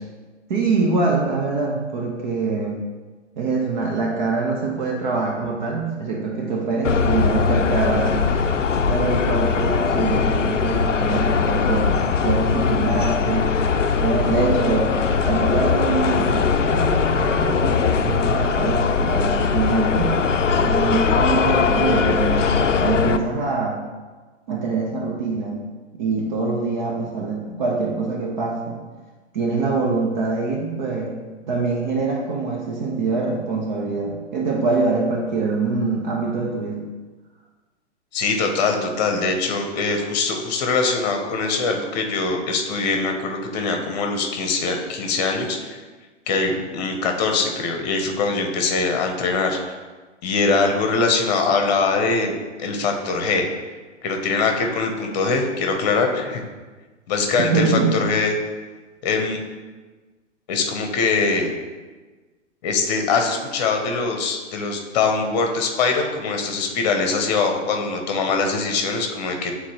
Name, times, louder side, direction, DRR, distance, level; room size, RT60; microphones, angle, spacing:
voice 1, 0.5-2.8 3.4-8.2 8.8-12.0 12.2-13.5 14.0-14.9 15.2-20.2 20.6-23.8 24.5-25.6 25.9-28.8 29.3-31.2 31.5-36.8 57.4-57.9, right 4 dB, 40° right, -1 dB, 0.9 m, -24 dB
sound 1, 6.8-23.2, left 5 dB, 85° left, 0.5 m, -20 dB
voice 2, 38.1-45.8 46.3-49.8 50.2-53.5 54.0-56.4 57.1-58.4 59.0-59.4 60.5-61.5 62.6-69.6, left 4 dB, 35° left, 3 dB, 0.9 m, -22 dB
8.5 x 3.9 x 3.0 m, 1.3 s
figure-of-eight pair, 115°, 36 cm